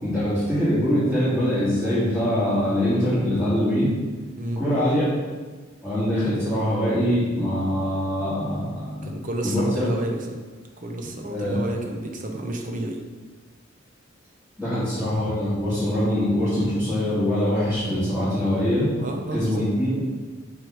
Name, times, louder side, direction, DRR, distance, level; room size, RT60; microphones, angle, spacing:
voice 1, 0.0-3.9 4.6-5.2 5.8-9.2 9.4-9.9 11.3-11.6 14.6-18.9 19.3-19.9, equal, ahead, -14 dB, 2.0 m, -23 dB
voice 2, 9.0-10.4 10.8-13.0 19.0-19.7, right 1 dB, 40° right, 2 dB, 0.8 m, -30 dB
7.8 x 3.5 x 4.7 m, 1.3 s
head